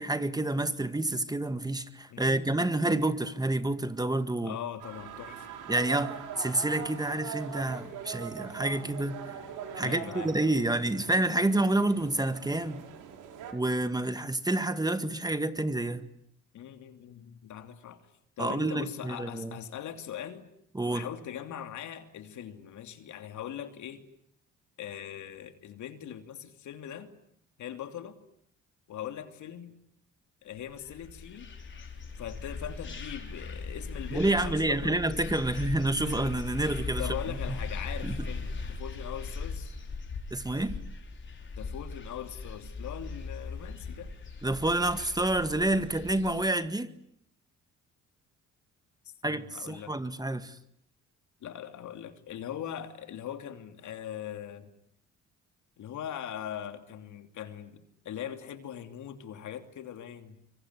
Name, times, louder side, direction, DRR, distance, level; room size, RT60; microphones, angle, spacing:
voice 1, 0.0-4.5 5.7-9.2 9.7-12.8 13.5-16.1 18.4-19.5 20.7-21.1 34.1-37.0 38.0-38.2 40.3-40.7 44.4-46.9 49.2-50.6, right 2 dB, 15° right, 1.8 m, -28 dB
voice 2, 2.1-3.1 4.4-5.5 9.8-10.3 16.5-18.0 18.4-20.4 20.9-24.1 24.8-27.1 27.6-28.2 28.9-29.8 30.4-31.5 32.1-35.0 37.0-39.7 41.6-44.1 49.0-49.9 51.4-54.7 55.8-60.4, left 10 dB, 75° left, 3.0 m, -41 dB
sound 1, 4.8-13.5, right 8 dB, 90° right, 4.8 m, -42 dB
sound 2, 30.7-46.4, left 4 dB, 40° left, 5.0 m, -39 dB
25.0 x 24.5 x 9.8 m
cardioid pair, 90°, 30 cm